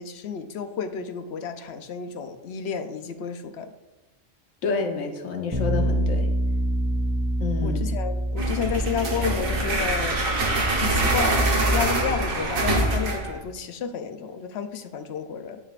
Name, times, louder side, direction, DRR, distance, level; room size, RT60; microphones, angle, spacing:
voice 1, 0.0-3.7 7.6-10.2 10.8-15.6, left 7 dB, 65° left, 8 dB, 0.8 m, -31 dB
voice 2, 4.6-6.3 7.4-7.9, left 4 dB, 90° left, 3 dB, 1.3 m, -28 dB
Bass guitar, 5.5-11.8, right 1 dB, 20° right, 0.5 m, -27 dB
sound 1, 8.4-13.4, right 2 dB, 90° right, 1.5 m, -24 dB
12.0 x 5.4 x 2.4 m, 1.1 s
omnidirectional pair, 1.3 m